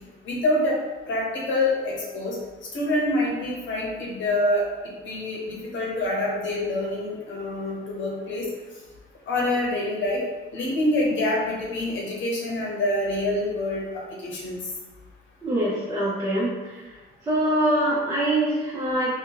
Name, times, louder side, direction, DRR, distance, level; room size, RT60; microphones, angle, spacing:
voice 1, 0.2-0.8 1.1-2.4 2.7-4.6 5.0-8.5 9.3-10.2 10.5-14.6, left 1 dB, 70° left, -3 dB, 0.9 m, -26 dB
voice 2, 15.4-16.5 17.3-19.1, right 1 dB, 20° right, -8 dB, 0.9 m, -23 dB
2.8 x 2.3 x 3.8 m, 1.3 s
cardioid pair, 90°, 20 cm